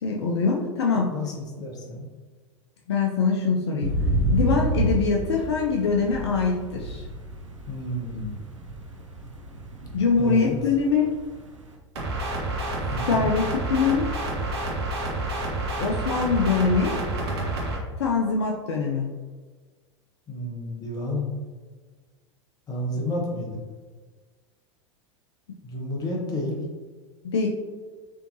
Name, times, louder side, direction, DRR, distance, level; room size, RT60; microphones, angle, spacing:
voice 1, 0.0-1.1 2.9-4.0 4.3-7.0 9.9-11.1 13.1-14.1 15.8-17.0 18.0-19.2 22.9-23.2 27.2-27.5, left 5 dB, 60° left, 0 dB, 0.5 m, -23 dB
voice 2, 0.9-2.1 7.7-8.4 10.2-10.5 12.9-13.3 20.3-21.4 22.7-23.6 25.6-26.6, left 1 dB, 25° left, 0 dB, 0.9 m, -31 dB
sound 1, 3.8-11.7, right 1 dB, 85° right, 0.5 m, -29 dB
sound 2, 11.9-17.8, right 2 dB, 60° right, 0.9 m, -29 dB
4.3 x 2.7 x 2.7 m, 1.4 s
figure-of-eight pair, 85°, 16 cm